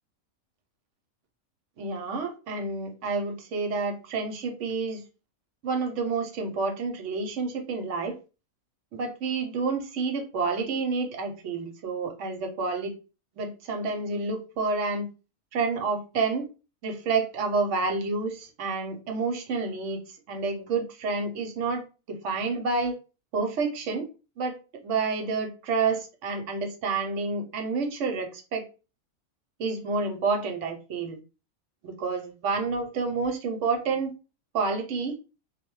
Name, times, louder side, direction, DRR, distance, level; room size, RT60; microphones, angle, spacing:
voice 1, 1.8-5.0 5.6-8.1 8.9-12.9 13.4-15.1 15.5-16.5 16.8-20.0 20.3-22.9 23.3-24.1 24.4-24.5 24.8-28.7 29.6-31.2 31.8-34.1 34.5-35.2, right 4 dB, 65° right, 4 dB, 0.8 m, -29 dB
2.2 x 2.1 x 3.0 m, 0.32 s
omnidirectional pair, 1.5 m